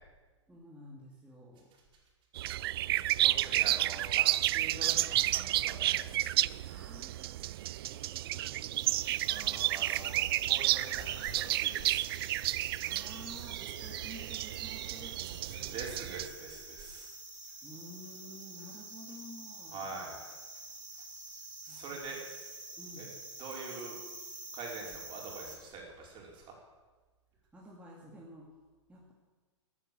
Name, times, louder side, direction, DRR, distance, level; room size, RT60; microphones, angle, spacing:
voice 1, 0.5-1.7 6.7-9.2 12.8-16.1 17.6-20.0 21.7-22.0 22.8-23.1 27.5-28.5 28.9-29.1, equal, 5° right, -4 dB, 2.7 m, -52 dB
sound 1, 2.3-16.3, right 15 dB, 50° right, 0.4 m, -31 dB
voice 2, 3.1-6.1 6.5-6.6 9.2-12.0 15.5-17.1 19.7-20.2 21.6-22.2 23.0-23.1 23.4-24.0 24.5-26.5, right 4 dB, 30° right, -1 dB, 5.0 m, -44 dB
sound 2, 8.7-25.6, right 2 dB, 85° right, 4.6 m, -48 dB
14.0 x 12.5 x 7.8 m, 1.3 s
figure-of-eight pair, 105°, 16 cm